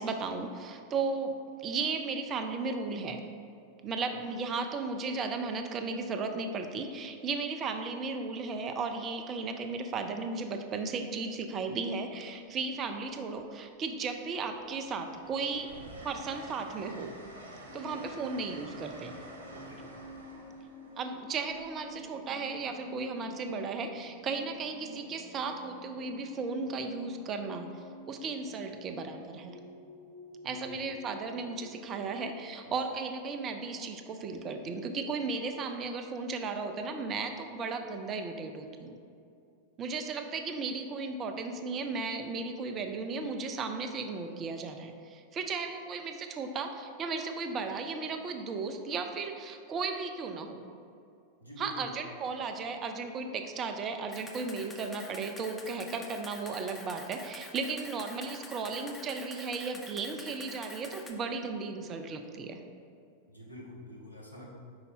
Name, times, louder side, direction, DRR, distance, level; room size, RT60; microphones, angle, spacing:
voice 1, 0.0-1.3 1.6-3.2 3.8-15.7 16.0-17.1 17.7-19.1 21.0-29.6 30.4-38.9 39.8-50.6 51.6-62.6, right 4 dB, 30° right, 6 dB, 0.5 m, -35 dB
Train, 12.7-13.5 13.9-22.6 24.2-24.5, right 1 dB, 65° right, 0.8 m, -50 dB
sound 1, 17.7-31.7, left 2 dB, 50° left, 0.7 m, -50 dB
voice 2, 51.4-52.0 63.3-64.5, left 1 dB, 85° left, -3 dB, 1.1 m, -46 dB
Camera, 54.1-61.1, left 2 dB, 15° left, 0.6 m, -47 dB
5.3 x 4.7 x 4.3 m, 2.5 s
figure-of-eight pair, 90°, 0 cm